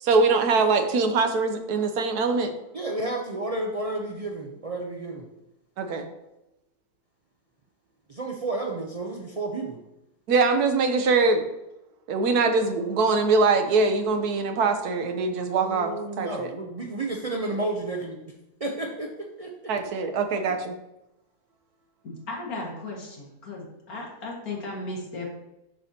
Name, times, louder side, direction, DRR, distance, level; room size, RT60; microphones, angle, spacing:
voice 1, 0.0-2.5 5.8-6.1 10.3-11.4 12.1-16.5 19.7-20.5, right 4 dB, 80° right, 5 dB, 1.3 m, -23 dB
voice 2, 2.7-5.3 8.1-9.8 15.6-18.2 18.6-19.7, right 2 dB, 65° right, 0 dB, 0.3 m, -31 dB
voice 3, 22.0-23.2 23.5-25.3, left 2 dB, 70° left, -2 dB, 2.2 m, -35 dB
7.3 x 6.4 x 2.8 m, 0.90 s
omnidirectional pair, 1.6 m